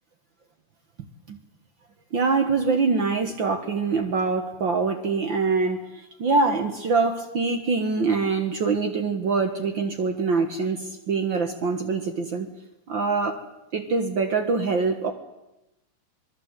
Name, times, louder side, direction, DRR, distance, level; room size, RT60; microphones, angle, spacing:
voice 1, 2.1-12.5 12.9-13.4 13.7-15.1, right 4 dB, 80° right, 5 dB, 1.0 m, -24 dB
26.0 x 21.0 x 8.2 m, 0.94 s
omnidirectional pair, 4.5 m